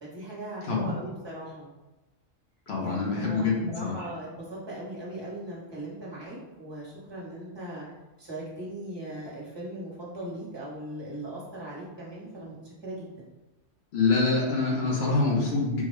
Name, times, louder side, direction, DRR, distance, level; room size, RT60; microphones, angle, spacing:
voice 1, 0.0-1.7 2.8-7.9 8.2-13.3, right 1 dB, 25° right, -6 dB, 1.0 m, -39 dB
voice 2, 2.7-3.5 3.8-4.1 13.9-15.8, left 4 dB, 65° left, -3 dB, 1.0 m, -25 dB
3.7 x 2.2 x 3.2 m, 1.1 s
omnidirectional pair, 1.2 m